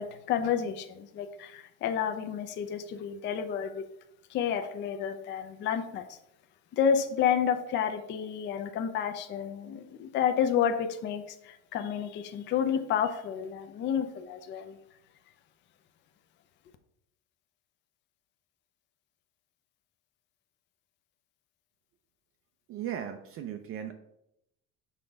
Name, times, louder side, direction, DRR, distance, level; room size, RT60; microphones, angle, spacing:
voice 1, 0.0-3.8 4.3-6.2 6.7-14.8, left 8 dB, 35° left, 8 dB, 0.5 m, -30 dB
voice 2, 22.7-23.9, right 9 dB, 40° right, 6 dB, 0.4 m, -37 dB
5.7 x 3.4 x 5.1 m, 0.80 s
cardioid pair, 160°, 33 cm